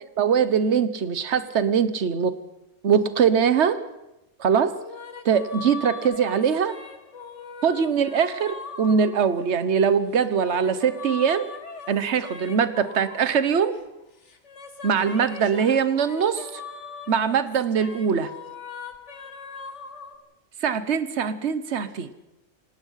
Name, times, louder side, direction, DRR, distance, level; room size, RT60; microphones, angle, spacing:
voice 1, 0.2-2.4 2.8-3.8 4.4-4.8 5.2-6.8 7.6-11.5 11.9-13.8 14.8-16.6 17.1-18.3 20.6-22.1, right 7 dB, 60° right, 13 dB, 1.4 m, -22 dB
sound 1, 4.7-9.7 10.2-13.9 14.2-20.1, left 5 dB, 60° left, 2.2 m, -40 dB
27.0 x 19.0 x 5.8 m, 0.92 s
omnidirectional pair, 1.4 m